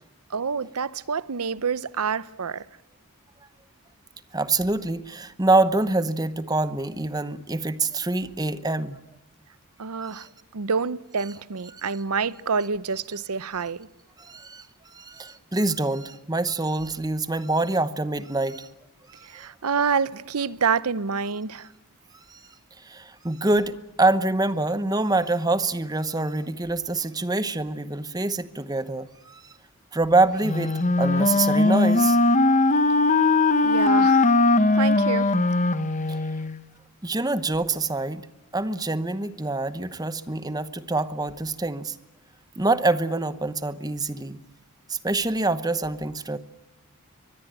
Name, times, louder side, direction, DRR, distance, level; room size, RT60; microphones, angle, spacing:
voice 1, 0.3-2.7 9.8-10.3 10.5-13.9 19.2-21.7 33.6-34.3 34.7-35.3, right 5 dB, 90° right, 0.8 m, -27 dB
voice 2, 4.3-9.0 10.1-10.3 11.7-11.8 14.2-14.7 14.9-18.7 19.1-19.5 22.3-22.4 22.8-29.5 29.9-32.2 36.1-36.2 37.0-38.2 38.5-42.0 42.6-44.4 44.9-46.4, right 2 dB, 15° right, 0.9 m, -25 dB
Wind instrument woodwind instrument, 30.4-36.5, left 2 dB, 35° left, 1.0 m, -20 dB
24.5 x 20.5 x 8.9 m
head